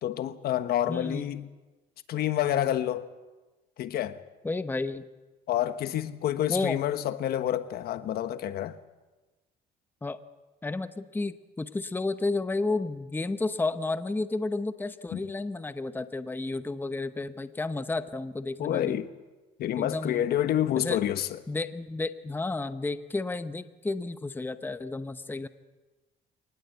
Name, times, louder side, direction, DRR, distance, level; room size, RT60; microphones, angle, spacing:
voice 1, 0.0-1.5 2.1-3.1 3.8-4.2 5.5-8.8 15.1-15.2 18.6-19.1 19.6-21.4, left 11 dB, 65° left, 1.2 m, -28 dB
voice 2, 0.9-1.2 4.4-5.1 6.5-6.8 10.0-10.2 10.6-19.0 19.8-20.3 20.7-21.0 21.5-25.5, left 3 dB, 10° left, 0.9 m, -32 dB
24.0 x 19.5 x 8.1 m
cardioid pair, 110°, 17 cm